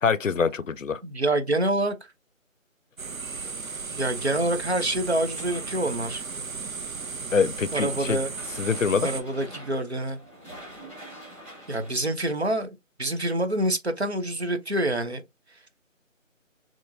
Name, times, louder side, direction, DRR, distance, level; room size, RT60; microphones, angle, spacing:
voice 1, 0.0-1.0 7.3-8.2 8.6-9.1, left 5 dB, 70° left, 0.6 m, -24 dB
voice 2, 1.0-1.9 4.0-6.2 7.7-8.3 9.0-10.2 11.7-15.2, right 1 dB, 55° right, 0.7 m, -26 dB
sound 1, 3.0-9.2, right 4 dB, 90° right, 0.8 m, -35 dB
sound 2, 5.3-11.9, right 1 dB, 10° right, 2.0 m, -47 dB
4.4 x 3.0 x 2.7 m
figure-of-eight pair, 175°, 40 cm